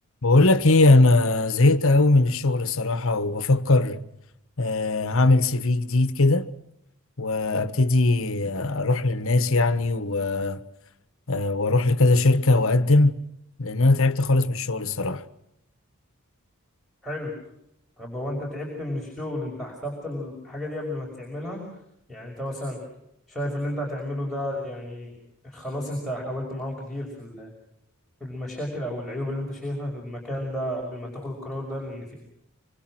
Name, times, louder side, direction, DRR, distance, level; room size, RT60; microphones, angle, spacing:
voice 1, 0.2-4.0 4.6-6.5 7.2-10.6 11.3-13.2 13.6-15.2, left 2 dB, 65° left, 1.4 m, -20 dB
voice 2, 17.0-17.4 18.0-21.6 22.1-22.8 23.3-25.1 25.4-27.5 28.2-32.1, left 1 dB, ahead, 5.9 m, -32 dB
26.5 x 26.0 x 6.3 m
head